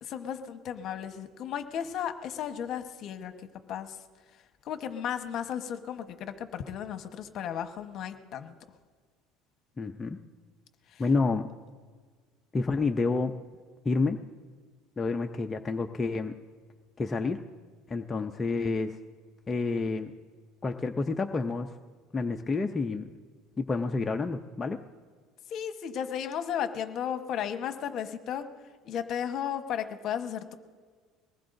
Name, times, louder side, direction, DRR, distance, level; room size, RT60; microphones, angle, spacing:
voice 1, 0.0-3.3 3.7-4.0 4.6-8.5 10.9-11.0 25.5-28.5 28.8-30.5, left 9 dB, 50° left, 8 dB, 1.1 m, -34 dB
voice 2, 9.8-10.2 11.0-11.5 12.5-13.3 13.8-14.2 15.0-16.3 17.0-17.4 17.9-19.0 19.5-20.1 20.6-21.7 22.1-23.1 23.6-24.8, left 3 dB, 20° left, 4 dB, 0.6 m, -29 dB
22.5 x 19.5 x 2.6 m, 1.6 s
cardioid pair, 135°, 0 cm